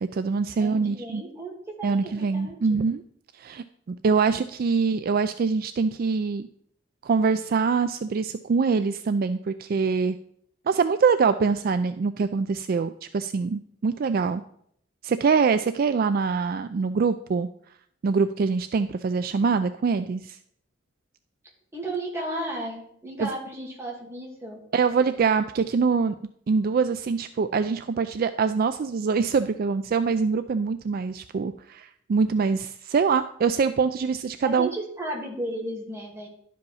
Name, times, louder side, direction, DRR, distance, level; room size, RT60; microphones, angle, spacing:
voice 1, 0.0-1.2 1.8-3.0 3.4-6.5 7.0-10.2 10.7-14.4 15.0-17.5 18.0-20.4 23.2-23.3 24.7-26.2 26.5-34.7, right 5 dB, 50° right, 11 dB, 0.4 m, -24 dB
voice 2, 0.6-2.9 21.7-24.6 34.4-36.3, right 1 dB, 15° right, -2 dB, 2.5 m, -34 dB
11.5 x 5.3 x 5.5 m, 0.68 s
head